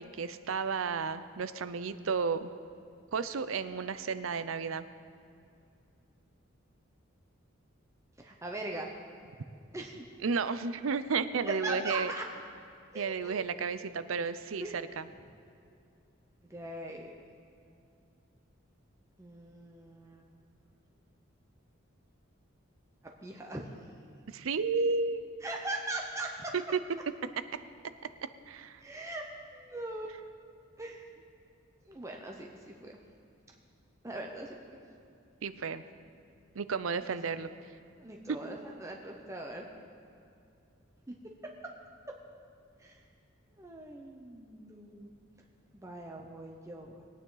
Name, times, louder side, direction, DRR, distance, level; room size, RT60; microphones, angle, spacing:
voice 1, 0.0-2.5 3.1-4.8 10.2-12.1 12.9-15.1 24.3-25.2 28.5-28.8 35.4-35.8 36.6-37.5, right 5 dB, 80° right, 13 dB, 0.6 m, -32 dB
voice 2, 8.2-8.9 9.7-10.0 11.4-12.2 12.9-13.5 14.6-14.7 16.5-17.1 19.2-20.2 23.2-23.7 25.4-26.5 28.8-29.2 29.5-30.1 30.8-31.1 31.9-32.9 34.0-34.8 38.0-39.7 41.1-41.2 42.8-43.0 43.6-45.1 45.7-47.0, right 2 dB, 15° right, 0 dB, 0.8 m, -40 dB
21.0 x 9.3 x 4.0 m, 2.5 s
head